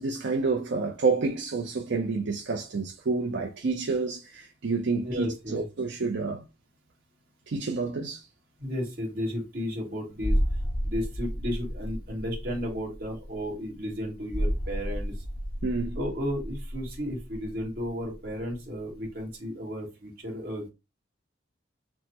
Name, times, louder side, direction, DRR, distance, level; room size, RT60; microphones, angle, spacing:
voice 1, 0.0-6.4 7.5-8.3 15.6-16.0, right 4 dB, 70° right, 0.5 m, -29 dB
voice 2, 5.0-5.6 8.6-10.4 10.8-15.2 16.0-20.7, equal, 50° right, 1.5 m, -33 dB
sound 1, 10.2-18.6 18.9-19.0, equal, 10° left, 0.4 m, -32 dB
6.2 x 2.1 x 2.9 m
head